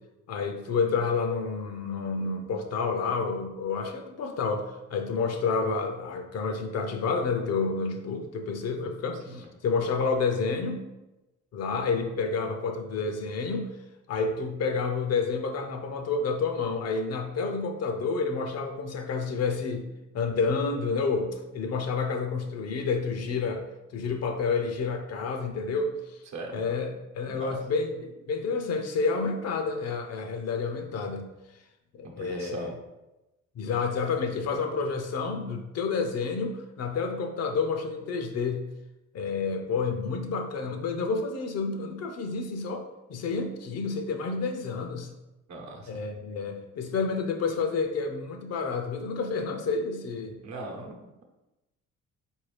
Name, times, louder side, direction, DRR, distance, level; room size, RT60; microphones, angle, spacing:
voice 1, 0.3-10.9 11.5-13.7 14.1-19.8 20.1-23.6 23.9-26.2 26.5-31.3 31.9-32.7 33.6-38.6 39.1-42.8 43.1-45.1 45.9-50.4, left 4 dB, 55° left, 5 dB, 0.6 m, -29 dB
voice 2, 32.0-32.8 45.5-45.9 50.4-51.0, right 2 dB, 65° right, 0 dB, 0.9 m, -38 dB
4.1 x 2.7 x 3.2 m, 0.99 s
supercardioid pair, 80°, 30 cm